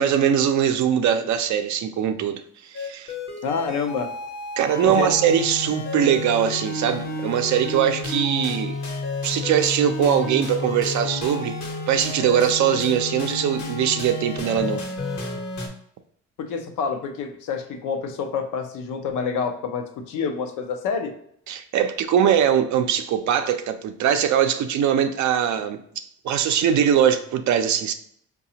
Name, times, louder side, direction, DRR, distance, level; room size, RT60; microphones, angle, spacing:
voice 1, 0.0-2.4 2.7-3.1 4.6-8.8 9.2-11.6 11.9-14.8 21.5-25.8 26.2-27.9, right 9 dB, 70° right, 8 dB, 0.5 m, -21 dB
sound 1, 2.7-15.7, left 2 dB, 65° left, 1.0 m, -31 dB
voice 2, 3.4-4.1 4.8-5.1 16.4-21.1, left 5 dB, 85° left, 6 dB, 0.6 m, -27 dB
4.8 x 2.3 x 2.7 m, 0.68 s
cardioid pair, 90°, 30 cm